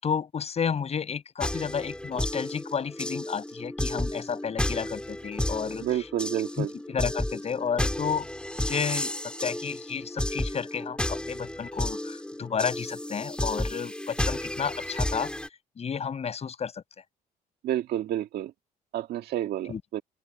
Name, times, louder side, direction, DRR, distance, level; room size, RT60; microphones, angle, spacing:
voice 1, 0.0-6.1 6.6-8.3 8.7-15.3 15.8-16.7 19.7-19.8, left 7 dB, 40° left, 7.3 m, -32 dB
sound 1, 1.4-15.5, left 1 dB, 5° left, 6.0 m, -32 dB
voice 2, 5.8-6.7 17.6-18.5 18.9-20.0, right 12 dB, 70° right, 1.9 m, -30 dB
open air
cardioid pair, 110°, 17 cm